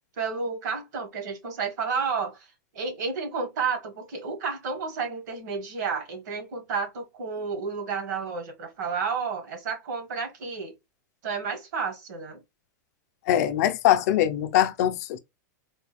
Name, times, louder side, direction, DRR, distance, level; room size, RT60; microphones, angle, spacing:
voice 1, 0.2-2.5 2.7-10.7 11.2-12.4, right 5 dB, 70° right, 1.5 m, -31 dB
voice 2, 13.3-15.2, left 12 dB, 55° left, 0.5 m, -22 dB
3.7 x 2.3 x 3.3 m
supercardioid pair, 145°, 10 cm